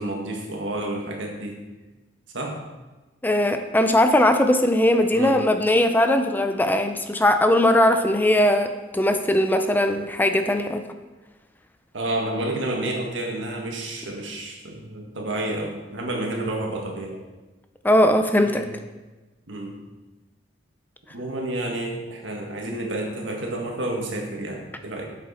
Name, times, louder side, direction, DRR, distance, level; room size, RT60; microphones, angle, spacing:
voice 1, 0.0-1.6 2.3-2.6 5.1-5.3 11.9-17.2 18.4-18.7 19.5-19.8 21.1-25.0, right 1 dB, 85° right, 1 dB, 1.7 m, -30 dB
voice 2, 3.2-10.8 17.8-18.6, left 1 dB, 10° left, 7 dB, 0.5 m, -19 dB
8.6 x 7.3 x 4.3 m, 1.2 s
head